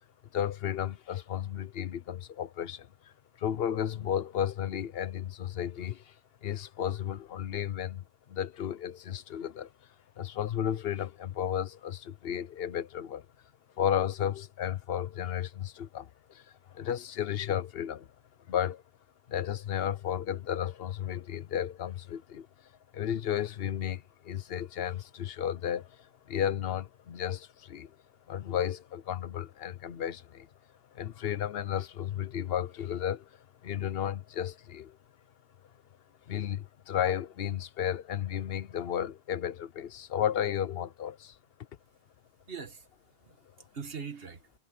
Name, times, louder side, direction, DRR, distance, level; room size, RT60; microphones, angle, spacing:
voice 1, 0.3-2.9 3.4-6.1 6.4-9.7 10.2-13.3 13.8-18.1 18.5-18.8 19.3-22.5 22.9-28.0 28.3-30.5 30.9-33.3 33.6-35.0 36.3-41.4, left 9 dB, 70° left, 0.9 m, -33 dB
voice 2, 42.5-44.5, right 6 dB, 70° right, 2.1 m, -43 dB
omnidirectional pair, 1.0 m